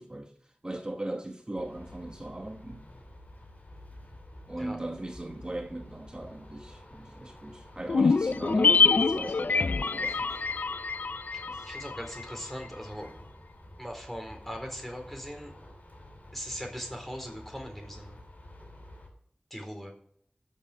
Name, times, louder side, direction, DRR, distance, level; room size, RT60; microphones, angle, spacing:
voice 1, 0.0-2.9 4.5-10.4 11.5-11.8, right 1 dB, 30° right, 1.2 m, -39 dB
sound 1, 1.6-19.1, left 1 dB, 55° left, 5.3 m, -50 dB
sound 2, 7.9-12.4 12.6-12.7, left 4 dB, 80° left, 0.4 m, -25 dB
voice 2, 11.3-13.1 13.8-15.5 16.3-18.2 19.5-19.9, equal, 5° left, 4.1 m, -40 dB
13.5 x 7.8 x 6.6 m
wide cardioid pair, 55°, 3 cm